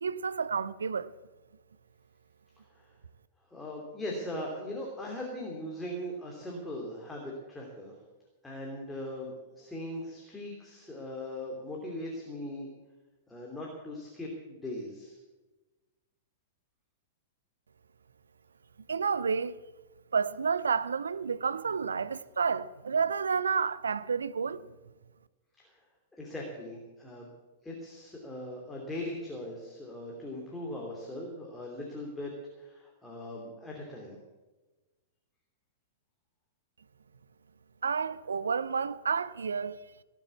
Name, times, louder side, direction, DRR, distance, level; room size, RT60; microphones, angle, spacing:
voice 1, 0.0-1.1 18.9-19.6 20.1-24.7 37.8-39.8, right 5 dB, 70° right, 0.5 m, -30 dB
voice 2, 3.5-8.0 8.4-12.7 13.3-15.2 26.2-27.3 27.6-32.3 32.6-34.2, left 1 dB, 10° left, 2.8 m, -39 dB
17.5 x 7.5 x 8.4 m
figure-of-eight pair, 100°, 0 cm